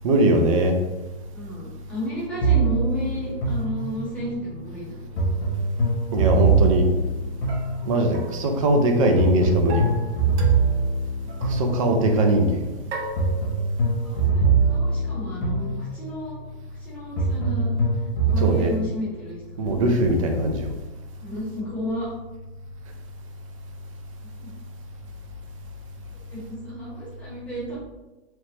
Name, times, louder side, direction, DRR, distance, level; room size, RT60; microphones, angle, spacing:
voice 1, 0.0-0.7 6.1-6.9 7.9-9.9 11.4-12.6 18.4-18.7 19.6-20.7, right 1 dB, 35° right, 3 dB, 0.4 m, -20 dB
voice 2, 1.3-5.0 14.0-16.4 16.8-17.7 18.3-20.0 21.2-22.1 24.2-24.5 26.1-27.8, equal, 5° left, -9 dB, 0.9 m, -33 dB
sound 1, 2.4-4.3 5.2-8.2 9.2-12.3 13.2-16.2 17.2-18.5, right 4 dB, 60° left, 0.8 m, -23 dB
sound 2, 5.1-5.2 7.5-9.1 9.7-10.9 11.3-11.6 12.9-13.9, right 2 dB, 80° right, 0.6 m, -38 dB
2.9 x 2.0 x 3.1 m, 1.1 s
hypercardioid pair, 145°, 32 cm